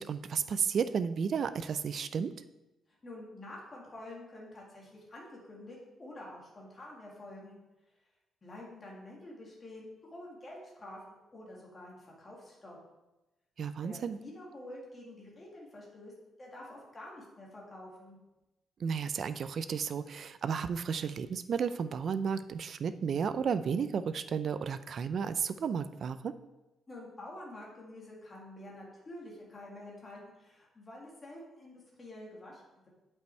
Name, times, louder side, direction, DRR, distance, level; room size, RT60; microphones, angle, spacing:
voice 1, 0.0-2.3 13.6-14.2 18.8-26.3, right 6 dB, 40° right, 12 dB, 0.4 m, -33 dB
voice 2, 3.0-7.6 8.4-12.8 13.8-16.1 16.4-18.2 26.9-32.9, left 1 dB, 20° left, -3 dB, 2.0 m, -48 dB
8.1 x 5.3 x 4.5 m, 1.0 s
cardioid pair, 175°, 0 cm